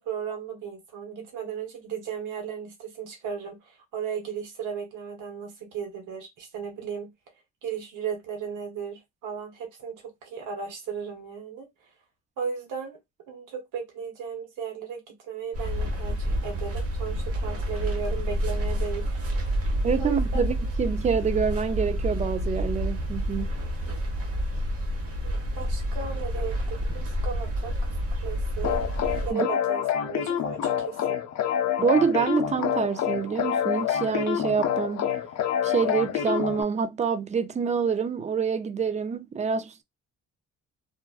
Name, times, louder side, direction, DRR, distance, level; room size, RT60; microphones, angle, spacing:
voice 1, 0.0-7.1 7.6-11.7 12.4-13.0 13.3-19.2 20.0-20.2 23.9-24.0 25.2-27.9 28.2-28.8 29.2-31.2, right 7 dB, 90° right, 0.9 m, -35 dB
sound 1, 15.5-29.3, equal, 50° right, 1.0 m, -29 dB
voice 2, 19.8-23.5 29.3-29.5 31.8-35.1 35.6-39.8, right 6 dB, 25° right, 0.3 m, -26 dB
sound 2, 28.6-36.6, left 9 dB, 60° left, 0.5 m, -27 dB
2.5 x 2.2 x 2.3 m
cardioid pair, 85°, 30 cm